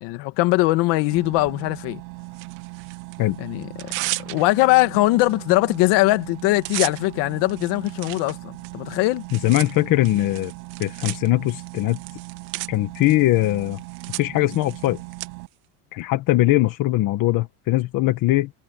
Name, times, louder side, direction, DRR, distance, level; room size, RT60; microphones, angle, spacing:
voice 1, 0.0-2.0 3.4-3.9 4.3-9.2, left 20 dB, 60° left, 2.0 m, -21 dB
sound 1, 1.1-15.5, right 40 dB or more, 85° right, 7.8 m, -39 dB
Tearing, 2.3-3.2 3.6-4.7 5.2-5.3 5.6-5.9 6.2-15.3, right 20 dB, 60° right, 1.7 m, -35 dB
voice 2, 9.3-10.5 10.8-12.0 12.7-13.8 14.2-15.0 15.9-18.5, left 17 dB, 45° left, 1.4 m, -21 dB
cardioid pair, 175°, 46 cm